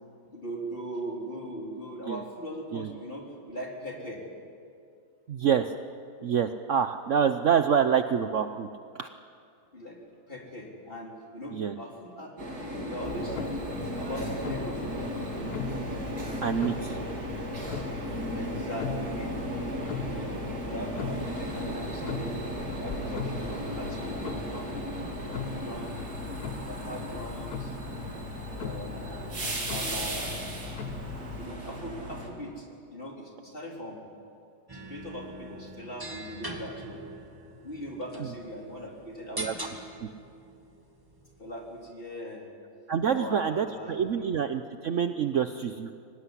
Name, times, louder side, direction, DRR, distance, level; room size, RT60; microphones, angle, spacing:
voice 1, 0.3-4.2 8.2-8.4 9.7-10.0 10.3-12.3 12.7-13.4 14.0-14.8 18.3-19.4 20.1-22.4 22.8-24.9 25.3-26.0 26.5-27.8 28.6-29.1 29.4-30.4 31.4-34.0 34.7-37.0 37.6-39.7 41.4-42.5 43.1-44.3, equal, 25° left, -1 dB, 3.9 m, -40 dB
voice 2, 5.3-5.7 6.2-8.7 8.9-9.1 11.5-11.7 16.4-17.0 39.3-39.5 40.0-40.1 42.9-45.9, right 7 dB, 75° right, 9 dB, 0.7 m, -27 dB
sound 1, 12.4-32.3, right 1 dB, 45° right, 3.7 m, -36 dB
Clock, 13.0-31.5, left 6 dB, 50° left, 1.8 m, -39 dB
sound 2, 34.7-41.9, right 1 dB, 10° right, 2.0 m, -43 dB
24.0 x 19.0 x 9.9 m, 2.4 s
omnidirectional pair, 2.3 m